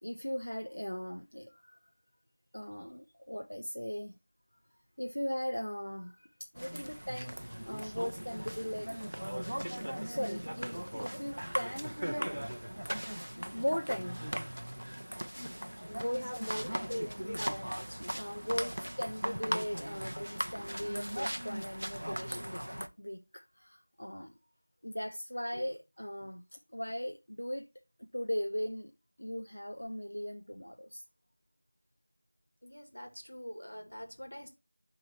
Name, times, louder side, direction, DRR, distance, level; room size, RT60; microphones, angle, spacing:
voice 1, 0.0-1.8 2.5-4.2 5.0-6.3 6.5-7.4 7.6-8.9 10.1-12.5 13.2-14.2 15.8-16.3 16.9-24.4 24.8-27.7 28.0-28.9 29.2-31.0, equal, 85° left, 1.0 m, -38 dB
sound 1, 6.6-22.9, equal, 80° right, 0.9 m, -38 dB
voice 2, 15.4-15.7 16.1-17.3 25.5-25.7 32.6-34.5, equal, 65° left, 2.2 m, -44 dB
11.5 x 4.0 x 3.0 m
figure-of-eight pair, 180°, 0 cm